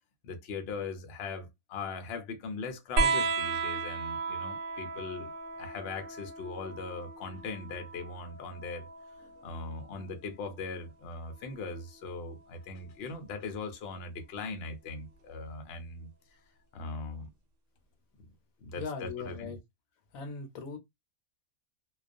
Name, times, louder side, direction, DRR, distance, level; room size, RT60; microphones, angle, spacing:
voice 1, 0.2-5.3 5.6-8.9 9.4-16.1 16.7-17.3 18.6-19.5, left 4 dB, 60° left, 0.7 m, -40 dB
sound 1, 3.0-10.0 11.4-12.2 13.5-13.6, right 4 dB, 70° right, 0.9 m, -35 dB
voice 2, 18.7-19.6 20.1-20.8, left 5 dB, 80° left, 1.0 m, -39 dB
2.3 x 2.2 x 2.4 m
omnidirectional pair, 1.5 m